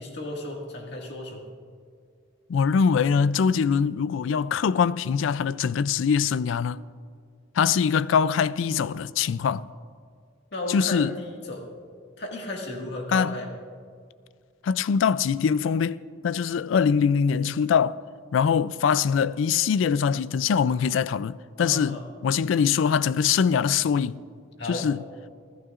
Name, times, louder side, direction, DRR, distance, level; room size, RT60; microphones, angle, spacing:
voice 1, 0.0-1.4 10.5-11.7 12.2-13.5 21.6-22.0 24.6-24.9, left 1 dB, 60° left, 1.9 m, -34 dB
voice 2, 2.5-6.8 7.6-9.7 10.7-11.1 13.1-13.4 14.6-16.0 16.2-18.0 18.3-24.2 24.7-25.0, left 6 dB, 75° left, 0.3 m, -23 dB
26.5 x 13.5 x 2.5 m
head